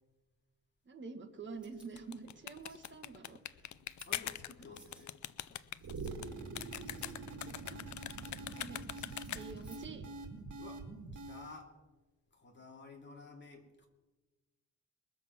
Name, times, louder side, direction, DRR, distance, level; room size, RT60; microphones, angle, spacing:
voice 1, 0.8-3.6 7.4-7.8 8.3-8.8 9.3-10.0, right 4 dB, 35° right, 5 dB, 1.5 m, -48 dB
sound 1, 1.5-10.4, right 2 dB, 5° right, 5.3 m, -65 dB
sound 2, 1.8-9.7, left 12 dB, 70° left, 0.5 m, -43 dB
voice 2, 4.1-5.1 10.6-10.8 11.1-11.7 12.3-13.9, left 3 dB, 35° left, 1 dB, 2.5 m, -52 dB
sound 3, 5.8-11.6, right 3 dB, 70° right, 2.0 m, -45 dB
21.5 x 7.4 x 6.0 m, 1.2 s
wide cardioid pair, 145°, 31 cm